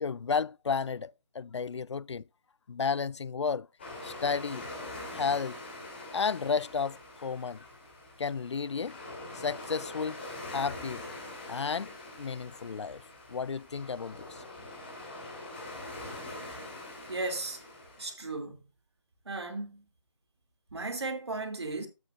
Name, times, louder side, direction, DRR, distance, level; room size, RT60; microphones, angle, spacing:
voice 1, 0.0-2.2 2.7-3.7 4.0-4.7 5.1-5.6 6.1-7.6 8.2-9.0 9.3-10.2 10.5-11.0 11.5-13.0 13.3-14.4, left 5 dB, 65° left, 0.4 m, -32 dB
sound 1, 3.8-18.1, left 2 dB, 20° left, 2.7 m, -44 dB
voice 2, 17.1-17.6 18.0-18.6 19.3-19.8 20.7-21.9, right 3 dB, 60° right, 2.8 m, -35 dB
13.0 x 8.1 x 2.5 m
figure-of-eight pair, 175°, 16 cm